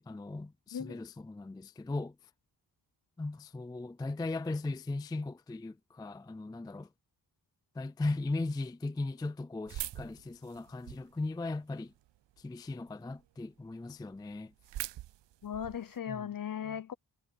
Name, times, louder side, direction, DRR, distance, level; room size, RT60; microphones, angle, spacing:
voice 1, 0.0-2.1 3.2-6.9 7.8-11.9 12.4-14.5 16.1-16.3 16.7-16.8, left 2 dB, 10° left, 0.3 m, -37 dB
sound 1, 9.7-11.2 11.7-12.4 12.9-13.0 13.2-13.3 13.7-13.8 13.9-16.0, right 13 dB, 75° right, 0.5 m, -42 dB
voice 2, 15.4-16.9, left 8 dB, 50° left, 0.8 m, -37 dB
wide cardioid pair, 150°, 43 cm